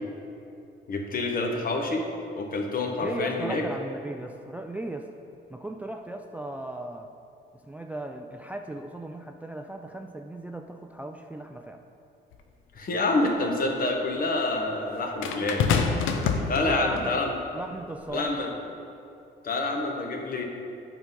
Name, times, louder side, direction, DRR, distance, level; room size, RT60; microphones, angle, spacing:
voice 1, 0.9-2.1 2.4-3.6 12.8-15.7 16.5-17.3 18.1-18.5 19.4-20.4, left 2 dB, 45° left, 2 dB, 1.1 m, -27 dB
voice 2, 3.0-5.1 5.5-7.1 7.6-11.8 16.5-17.2 17.5-18.6, right 1 dB, 10° right, 4 dB, 0.3 m, -37 dB
sound 1, 12.3-12.4 15.2-17.1 18.0-18.2, left 5 dB, 90° left, 0.6 m, -26 dB
8.7 x 3.8 x 5.3 m, 2.7 s
cardioid pair, 90°, 20 cm